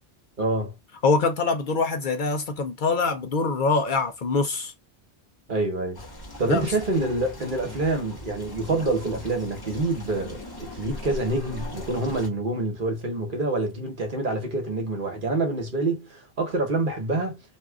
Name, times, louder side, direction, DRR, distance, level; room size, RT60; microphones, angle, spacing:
voice 1, 0.4-0.7 5.5-6.0 6.4-17.4, right 2 dB, 55° right, 1.2 m, -27 dB
voice 2, 1.0-4.7 6.5-6.7, left 4 dB, 55° left, 0.7 m, -24 dB
sound 1, 5.9-12.3, left 1 dB, 20° left, 1.1 m, -40 dB
2.7 x 2.4 x 3.4 m
omnidirectional pair, 1.0 m